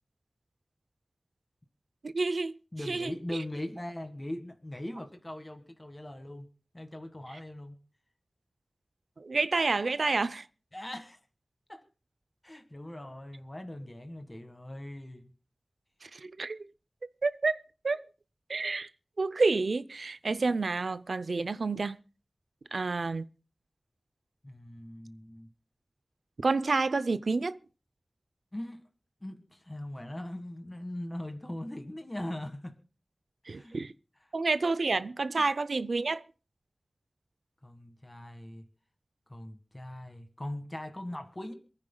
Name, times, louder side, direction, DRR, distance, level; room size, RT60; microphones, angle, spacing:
voice 1, 2.0-2.5 2.9-3.1 9.2-10.4 16.0-16.6 17.2-18.0 18.5-18.9 19.2-22.0 22.7-23.3 26.4-27.6 33.5-33.9 34.3-36.2, right 3 dB, 85° right, 0.5 m, -29 dB
voice 2, 2.7-6.5 6.7-7.8 10.7-11.2 11.7-11.8 12.4-15.3 24.4-25.5 28.5-28.9 29.2-32.8 33.5-33.8 35.3-35.5 37.6-38.6 39.3-41.5, left 1 dB, 25° left, 1.6 m, -40 dB
27.5 x 9.8 x 2.3 m
wide cardioid pair, 65°, 0 cm